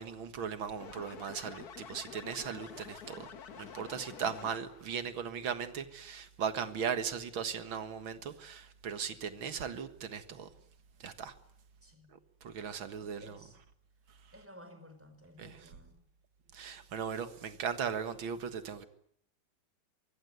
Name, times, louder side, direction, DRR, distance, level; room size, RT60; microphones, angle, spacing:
voice 1, 0.0-3.3 3.6-10.5 11.0-11.3 12.1-13.4 15.4-15.6 16.5-18.9, right 7 dB, 90° right, 2.4 m, -38 dB
sound 1, 0.8-4.9, left 7 dB, 55° left, 1.7 m, -48 dB
voice 2, 11.8-12.2 12.8-13.6 14.3-16.1, left 1 dB, 5° right, 4.6 m, -55 dB
24.0 x 23.0 x 9.6 m
omnidirectional pair, 2.1 m